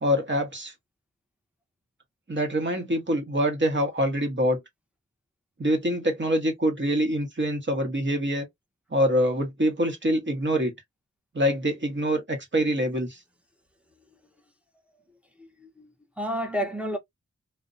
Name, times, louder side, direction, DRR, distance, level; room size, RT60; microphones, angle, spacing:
voice 1, 0.0-0.7 2.3-4.6 5.6-8.5 8.9-10.7 11.3-13.2, equal, 40° right, 1.0 m, -25 dB
voice 2, 15.4-17.0, equal, 5° right, 0.7 m, -31 dB
2.4 x 2.1 x 2.5 m
wide cardioid pair, 65°, 30 cm